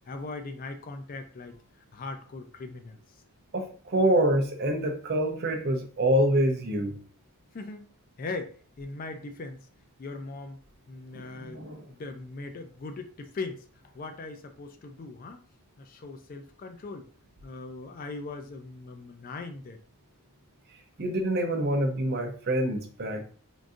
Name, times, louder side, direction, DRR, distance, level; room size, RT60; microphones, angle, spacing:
voice 1, 0.1-1.6 1.9-3.0 7.5-7.9 8.2-9.7 10.0-10.6 10.9-13.6 13.9-15.4 15.8-17.0 17.4-19.8, left 3 dB, 40° left, 0.3 m, -39 dB
voice 2, 3.5-6.9 11.3-11.8 21.0-23.3, right 1 dB, 45° right, 0.6 m, -26 dB
3.7 x 2.6 x 2.4 m
head